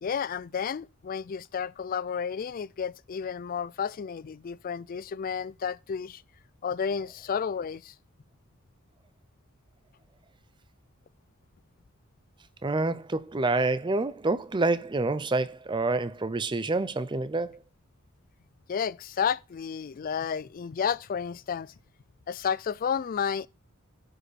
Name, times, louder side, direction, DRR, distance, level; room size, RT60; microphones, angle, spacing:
voice 1, 0.0-6.2 6.6-7.9 18.7-21.7 22.3-23.5, left 7 dB, 40° left, 0.3 m, -31 dB
voice 2, 12.6-17.6, right 3 dB, 20° right, 0.5 m, -27 dB
9.7 x 5.2 x 4.1 m
head